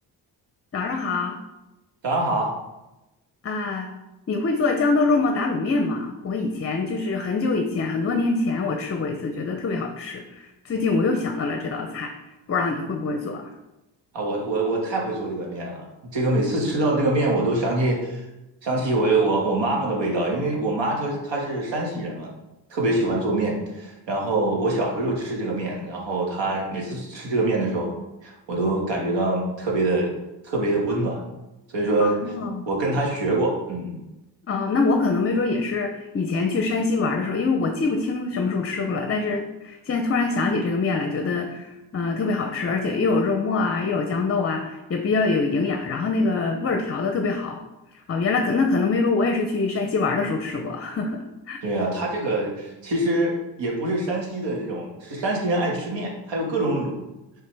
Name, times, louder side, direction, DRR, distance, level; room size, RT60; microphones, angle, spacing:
voice 1, 0.7-1.4 3.4-3.9 4.3-12.1 12.5-13.5 32.0-32.7 34.5-47.6 48.1-51.6, left 3 dB, 35° left, 4 dB, 0.6 m, -24 dB
voice 2, 2.0-2.5 14.1-15.9 16.1-18.3 18.6-22.3 22.7-27.9 28.2-30.1 30.4-31.2 31.7-32.3 32.7-34.0 51.6-57.0, right 2 dB, 80° right, -2 dB, 1.9 m, -24 dB
6.8 x 4.6 x 3.4 m, 0.97 s
wide cardioid pair, 135°, 44 cm